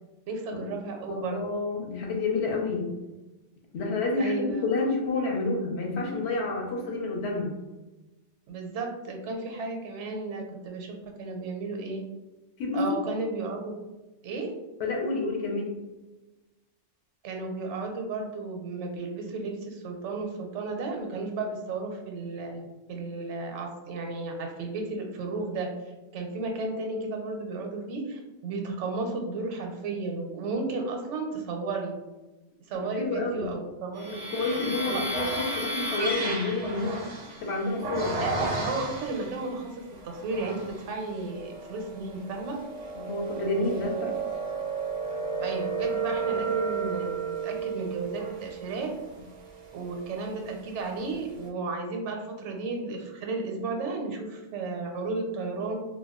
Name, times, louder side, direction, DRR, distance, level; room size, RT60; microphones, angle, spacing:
voice 1, 0.3-1.4 4.2-4.7 8.5-12.0 12.7-13.8 14.2-14.5 17.2-25.7 26.1-31.9 32.7-35.0 38.2-42.6 45.4-49.0 49.7-55.8, right 3 dB, 75° right, 3 dB, 0.9 m, -33 dB
voice 2, 1.1-2.9 3.7-7.5 12.6-13.0 14.8-15.8 32.7-33.5 34.3-37.1 37.4-38.1 42.9-44.2, left 3 dB, 70° left, 0 dB, 0.9 m, -29 dB
sound 1, 33.9-39.4 40.0-40.8 41.3-50.5, right 3 dB, 50° right, 0.5 m, -33 dB
2.3 x 2.1 x 3.5 m, 1.1 s
omnidirectional pair, 1.2 m